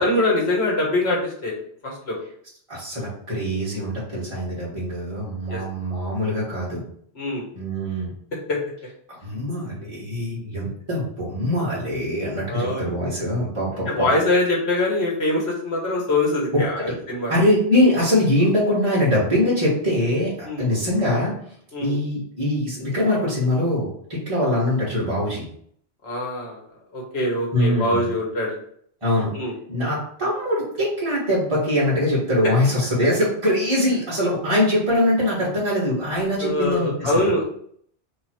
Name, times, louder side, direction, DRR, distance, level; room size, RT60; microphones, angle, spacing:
voice 1, 0.0-1.5 1.8-2.2 3.8-3.9 5.5-5.6 7.1-7.5 8.5-8.6 12.5-12.9 13.9-17.3 20.5-20.7 21.7-22.0 26.0-26.6 26.9-28.6 29.3-29.5 36.4-37.5, left 1 dB, 70° left, -3 dB, 1.7 m, -23 dB
voice 2, 2.7-6.8 7.5-8.1 9.2-14.1 16.8-16.9 17.3-21.4 21.8-25.5 27.5-28.1 29.0-29.3 29.7-37.3, left 1 dB, 30° right, -9 dB, 1.7 m, -23 dB
3.7 x 3.0 x 4.3 m, 0.63 s
omnidirectional pair, 1.1 m